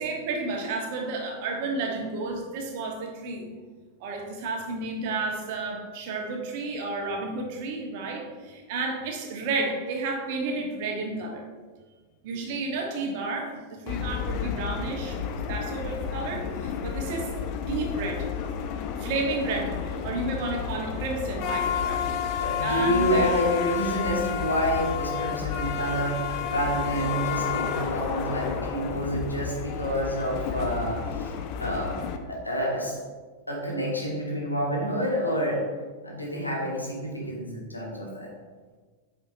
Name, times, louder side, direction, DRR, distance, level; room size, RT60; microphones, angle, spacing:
voice 1, 0.0-3.5 4.0-11.5 12.2-15.2 15.5-18.3 19.0-23.3, right 3 dB, 50° right, 1 dB, 1.2 m, -31 dB
sound 1, 13.9-32.2, left 7 dB, 40° left, 0.6 m, -31 dB
voice 2, 22.4-31.3 31.6-32.0 32.3-33.0 33.5-35.6 36.0-38.3, equal, 85° left, -3 dB, 1.8 m, -28 dB
8.5 x 5.8 x 2.6 m, 1.4 s
figure-of-eight pair, 90°, 0 cm